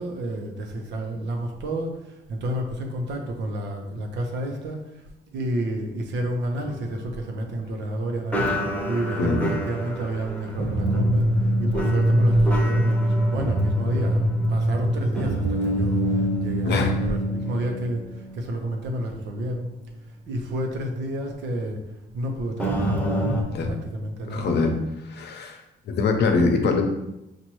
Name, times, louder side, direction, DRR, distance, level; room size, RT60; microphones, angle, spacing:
voice 1, 0.0-5.0 5.3-19.7 20.3-21.8 22.1-23.0 23.7-24.5, right 1 dB, 85° right, 2 dB, 0.9 m, -30 dB
sound 1, 6.6-7.9 8.3-18.7 19.0-19.2 19.8-19.9 22.6-23.4, equal, 10° left, 0.8 m, -24 dB
voice 2, 24.3-24.8 25.1-25.6 25.9-26.8, left 4 dB, 75° left, 4 dB, 0.7 m, -23 dB
6.1 x 2.6 x 3.0 m, 0.91 s
cardioid pair, 115°, 18 cm